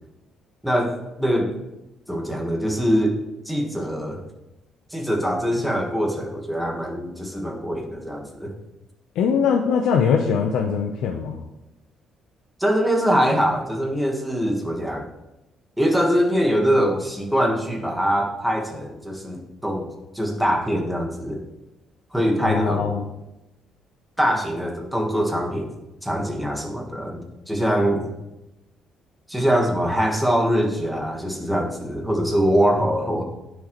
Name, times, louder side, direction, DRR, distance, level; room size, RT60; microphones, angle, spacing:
voice 1, 0.6-1.5 2.1-3.2 3.4-4.2 4.9-8.5 12.6-15.1 15.8-19.9 20.1-21.4 22.1-23.0 24.2-25.7 26.0-28.1 29.3-33.2, equal, ahead, 1 dB, 1.4 m, -23 dB
voice 2, 9.2-11.4 22.4-23.1, left 6 dB, 75° left, 2 dB, 0.8 m, -21 dB
15.5 x 6.3 x 3.1 m, 0.95 s
cardioid pair, 155°, 0 cm